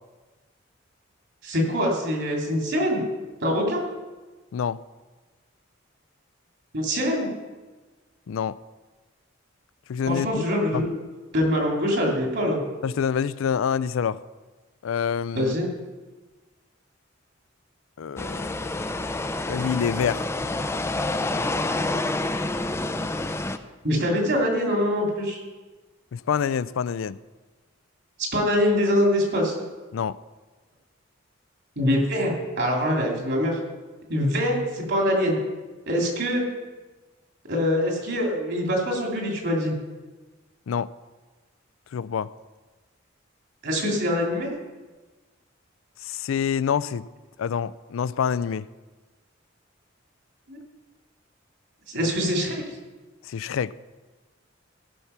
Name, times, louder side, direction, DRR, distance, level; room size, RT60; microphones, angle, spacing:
voice 1, 1.4-3.0 3.4-3.8 6.7-7.3 10.1-11.0 11.3-12.6 15.3-15.7 23.8-25.4 28.3-29.6 31.8-33.6 34.1-35.4 35.9-36.4 37.5-39.7 43.6-44.5 50.5-50.6 51.9-52.5, equal, 60° right, 0 dB, 2.8 m, -24 dB
voice 2, 9.9-10.4 10.7-10.8 12.8-14.2 14.8-15.5 18.0-18.4 19.5-20.2 26.1-27.2 29.9-30.2 40.7-40.9 41.9-42.3 46.0-47.1 47.4-48.6 51.9-52.1 53.3-53.7, left 7 dB, 80° left, 18 dB, 0.4 m, -26 dB
sound 1, 18.2-23.6, left 2 dB, 15° left, 0.4 m, -28 dB
15.5 x 6.0 x 5.7 m, 1.3 s
head